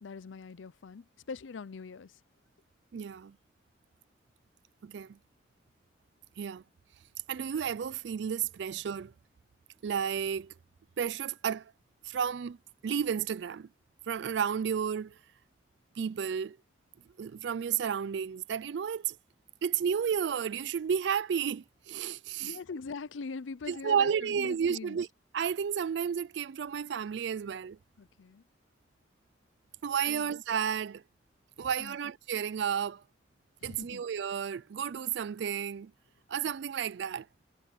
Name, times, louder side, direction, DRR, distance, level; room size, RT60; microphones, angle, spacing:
voice 1, 0.0-2.2 22.4-25.0 28.0-28.4 30.1-30.3 31.6-32.0 33.6-34.0, left 4 dB, 90° left, 0.5 m, -42 dB
voice 2, 2.9-3.3 4.8-5.2 6.4-6.6 7.3-9.1 9.8-10.5 11.0-11.7 12.0-12.6 12.8-13.7 14.1-15.2 16.0-16.6 17.2-19.2 19.6-22.6 23.7-25.1 25.3-27.8 29.8-31.0 31.6-33.0 33.6-35.9 36.3-37.3, right 7 dB, 70° right, 0.4 m, -32 dB
head